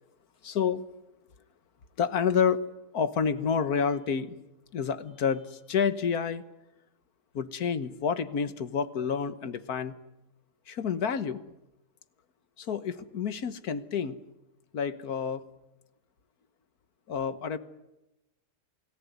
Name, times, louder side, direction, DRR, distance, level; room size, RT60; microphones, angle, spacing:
voice 1, 0.4-0.8 2.0-2.6 2.9-4.4 4.7-6.4 7.3-9.9 10.7-11.4 12.6-14.2 14.7-15.4 17.1-17.6, left 6 dB, 70° left, 13 dB, 1.7 m, -29 dB
28.5 x 19.0 x 9.4 m, 0.95 s
omnidirectional pair, 1.7 m